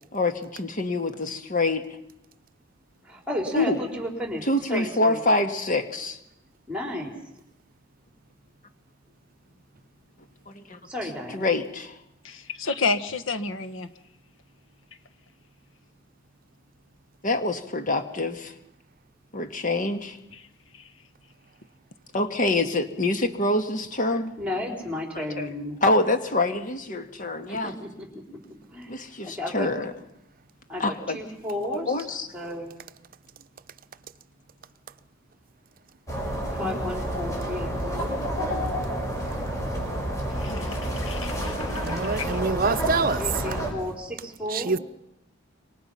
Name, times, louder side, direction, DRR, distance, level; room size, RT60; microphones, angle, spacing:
voice 1, 0.1-1.8 3.5-3.8 4.5-6.2 10.5-10.8 11.3-11.9 17.2-18.5 19.3-20.2 22.1-24.3 25.1-25.5 25.8-27.7 28.9-29.9 30.8-31.2 31.7-32.3 36.6-36.7, left 2 dB, 40° left, 1.8 m, -26 dB
voice 2, 3.0-5.2 6.7-7.1 10.9-11.5 24.4-25.8 27.5-28.4 28.7-28.9 29.2-29.7 30.7-32.7 36.5-38.2 43.2-44.7, left 1 dB, 5° right, 4.4 m, -33 dB
voice 3, 12.2-13.9 20.3-20.4 40.4-42.3, left 4 dB, 80° left, 1.5 m, -31 dB
sound 1, 36.1-43.7, right 1 dB, 15° left, 6.3 m, -29 dB
voice 4, 41.8-43.2 44.5-44.8, right 4 dB, 45° right, 0.8 m, -25 dB
27.0 x 24.5 x 5.8 m
head